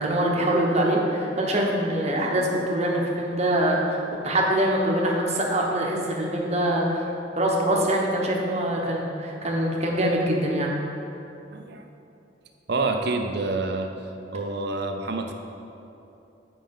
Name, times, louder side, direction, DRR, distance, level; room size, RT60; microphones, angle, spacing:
voice 1, 0.0-4.0 4.2-7.0 7.4-10.8, right 1 dB, 35° right, -1 dB, 1.1 m, -24 dB
voice 2, 11.5-11.8 12.7-13.9 14.2-15.3, right 3 dB, 60° right, 5 dB, 0.7 m, -27 dB
7.6 x 5.2 x 5.3 m, 2.8 s
head